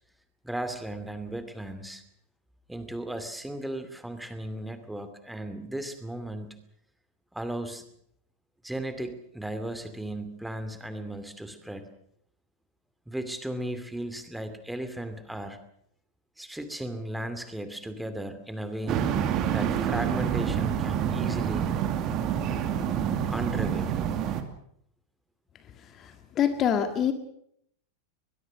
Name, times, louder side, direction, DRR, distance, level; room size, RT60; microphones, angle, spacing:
voice 1, 0.4-2.0 2.7-6.6 7.3-7.8 8.6-11.9 13.1-15.6 16.4-19.1 19.5-21.8 23.3-24.0, right 1 dB, 5° right, 9 dB, 2.6 m, -36 dB
sound 1, 18.9-24.4, right 9 dB, 35° right, 2.4 m, -27 dB
voice 2, 25.8-27.1, left 9 dB, 30° left, 9 dB, 1.8 m, -26 dB
22.5 x 21.5 x 6.4 m, 0.71 s
figure-of-eight pair, 90°, 0 cm